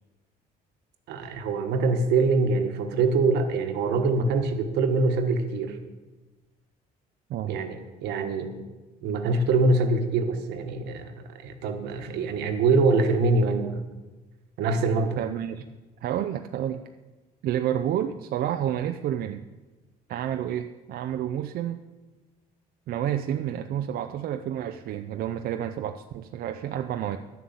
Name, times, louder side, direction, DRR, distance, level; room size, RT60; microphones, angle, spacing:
voice 1, 1.1-5.8 7.4-8.5 9.0-13.9 14.6-15.2, right 3 dB, 85° right, 6 dB, 1.4 m, -24 dB
voice 2, 15.2-15.6 16.0-16.8 17.4-19.5 20.1-21.8 22.9-27.2, right 10 dB, 65° right, 7 dB, 0.5 m, -29 dB
10.5 x 7.5 x 7.1 m, 1.2 s
cardioid pair, 110°, 17 cm